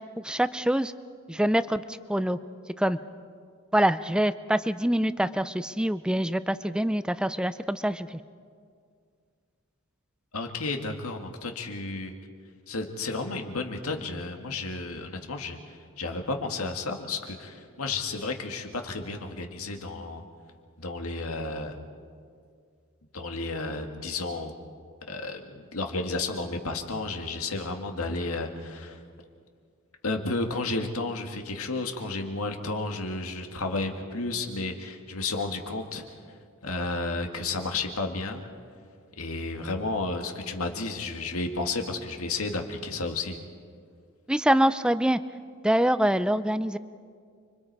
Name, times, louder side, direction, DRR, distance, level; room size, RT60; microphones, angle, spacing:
voice 1, 0.2-0.9 1.3-1.8 2.1-2.4 2.8-3.0 3.7-8.2 44.3-45.2 45.6-46.8, right 1 dB, 5° right, 13 dB, 0.5 m, -25 dB
voice 2, 10.3-12.1 12.7-20.2 20.8-21.7 23.1-24.5 25.1-29.0 30.0-36.0 36.6-38.5 39.2-43.4, left 3 dB, 80° left, 4 dB, 1.9 m, -32 dB
30.0 x 24.0 x 4.7 m, 2.1 s
head